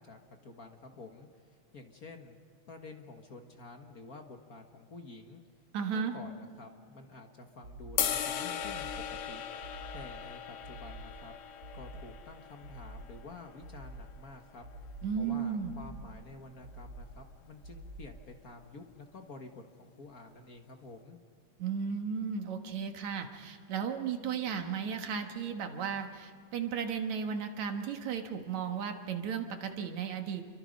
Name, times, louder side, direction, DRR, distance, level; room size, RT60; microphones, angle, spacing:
voice 1, 0.0-2.4 2.7-5.4 5.9-9.4 9.9-11.3 11.7-14.6 15.2-21.2, left 3 dB, 50° left, 4 dB, 1.1 m, -50 dB
voice 2, 5.7-6.1 15.0-15.8 21.6-30.4, right 7 dB, 65° right, 5 dB, 2.7 m, -35 dB
sound 1, 7.6-8.3 8.6-9.3 9.6-10.3 10.6-11.3 11.6-12.3 12.6-13.3 13.6-14.3 14.6-15.3 15.6-16.3 16.6-17.3 17.6-18.3, right 1 dB, 30° right, 6.1 m, -48 dB
sound 2, 8.0-14.2, left 9 dB, 65° left, 2.3 m, -38 dB
28.5 x 24.0 x 5.3 m, 2.3 s
omnidirectional pair, 3.6 m